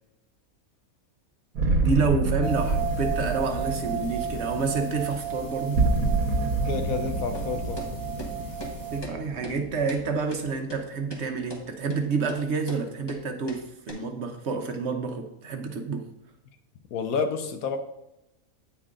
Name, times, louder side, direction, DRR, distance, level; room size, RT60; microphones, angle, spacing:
sound 1, 1.6-10.5, right 3 dB, 90° right, 1.3 m, -28 dB
voice 1, 1.8-5.8 8.9-16.0, right 4 dB, 55° right, 1.0 m, -29 dB
sound 2, 2.4-9.0, right 5 dB, 15° right, 1.3 m, -34 dB
voice 2, 6.6-7.8 16.9-17.8, left 5 dB, 80° left, 1.2 m, -29 dB
sound 3, 7.3-7.5 7.8-7.9 8.2-8.3 8.6-8.7 9.0-9.1 9.4-9.6 9.9-10.0 10.3-10.4 10.7-10.8 11.1-11.2 11.5-11.6 11.9-12.0 12.3-12.4 12.7-12.8 13.1-13.2 13.5-13.6 13.9-14.0, left 1 dB, 20° left, 1.0 m, -39 dB
8.6 x 4.5 x 3.6 m
omnidirectional pair, 1.5 m